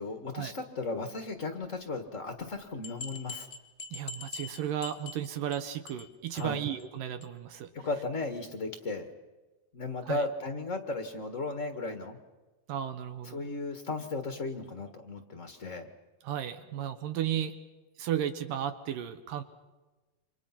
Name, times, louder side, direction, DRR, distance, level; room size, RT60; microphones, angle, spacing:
voice 1, 0.0-3.5 6.3-6.6 7.7-9.1 9.7-12.2 13.2-15.9, left 3 dB, 60° left, 6 dB, 0.8 m, -35 dB
sound 1, 2.4-2.5 2.8-5.6 5.9-6.1 6.4-6.5 6.8-6.9 7.2-7.3, left 4 dB, 20° left, 1.9 m, -43 dB
voice 2, 3.9-7.7 10.1-10.2 12.7-13.4 16.2-17.5 18.0-19.4, right 10 dB, 70° right, 9 dB, 2.7 m, -34 dB
30.0 x 25.5 x 6.0 m, 1.2 s
omnidirectional pair, 4.4 m